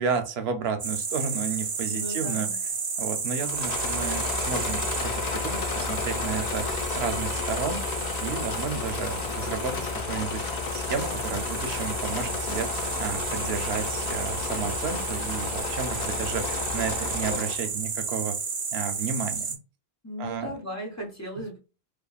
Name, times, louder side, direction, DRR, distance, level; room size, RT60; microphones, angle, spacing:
voice 1, 0.0-2.5 3.0-12.7 13.0-18.4 18.7-19.6 20.2-20.5, right 6 dB, 85° right, 8 dB, 0.8 m, -32 dB
sound 1, 0.8-19.6, right 5 dB, 50° right, 0.4 m, -33 dB
voice 2, 1.8-2.6 20.0-21.6, equal, 15° left, -2 dB, 0.8 m, -36 dB
Engine / Mechanisms, 3.4-17.7, left 5 dB, 55° left, 0.5 m, -32 dB
2.5 x 2.4 x 2.3 m, 0.32 s
omnidirectional pair, 1.0 m